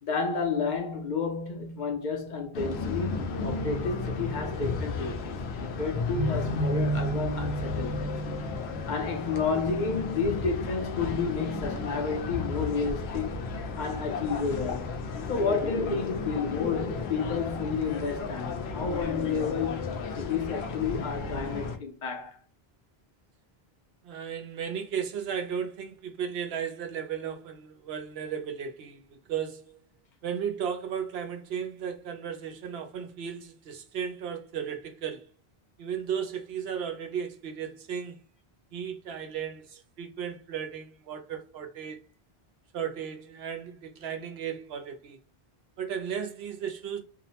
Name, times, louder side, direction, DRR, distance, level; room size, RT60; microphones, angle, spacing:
voice 1, 0.0-8.1 8.9-13.4 13.8-14.9 15.3-19.9 20.2-22.4, left 5 dB, 55° left, 0.6 m, -31 dB
sound 1, 2.5-21.8, left 3 dB, 90° left, 0.9 m, -33 dB
voice 2, 24.0-29.8 30.2-35.3 35.8-38.2 38.7-42.0 42.7-45.2 45.8-47.0, right 8 dB, 80° right, 0.9 m, -35 dB
2.6 x 2.0 x 2.8 m
omnidirectional pair, 1.0 m